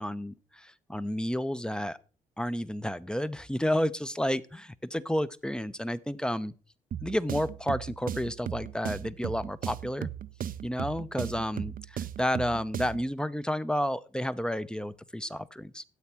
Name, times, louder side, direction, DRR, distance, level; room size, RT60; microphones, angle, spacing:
voice 1, 0.0-2.0 2.4-6.5 7.0-10.1 10.6-15.8, equal, 5° left, 15 dB, 0.9 m, -31 dB
sound 1, 6.9-13.1, right 9 dB, 50° right, 0.6 m, -37 dB
13.0 x 8.3 x 4.5 m, 0.37 s
hypercardioid pair, 45°, 18 cm